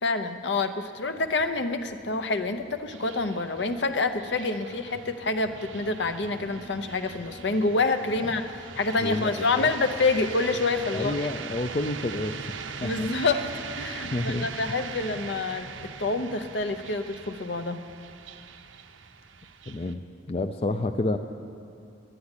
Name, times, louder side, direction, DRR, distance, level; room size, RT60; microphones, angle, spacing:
voice 1, 0.0-8.4 8.8-11.3 12.8-13.5 13.8-17.8, left 3 dB, 65° left, 9 dB, 0.7 m, -27 dB
sound 1, 1.0-19.9, right 5 dB, 85° right, 0.7 m, -41 dB
voice 2, 9.0-9.7 10.9-12.5 12.8-13.1 14.0-14.5 19.7-20.0 20.3-21.2, left 2 dB, 30° left, 7 dB, 0.4 m, -29 dB
10.5 x 10.0 x 9.8 m, 2.5 s
head